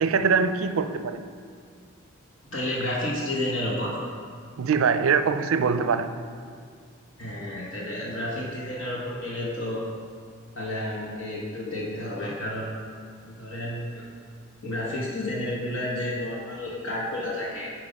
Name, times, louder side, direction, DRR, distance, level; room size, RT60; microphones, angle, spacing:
voice 1, 0.0-1.3 4.6-6.1, right 5 dB, 80° right, 11 dB, 0.4 m, -23 dB
voice 2, 2.5-4.0 7.2-9.9 10.5-12.8 13.3-14.1 14.6-17.7, left 1 dB, 70° left, -4 dB, 1.2 m, -31 dB
8.9 x 4.7 x 5.1 m, 2.1 s
head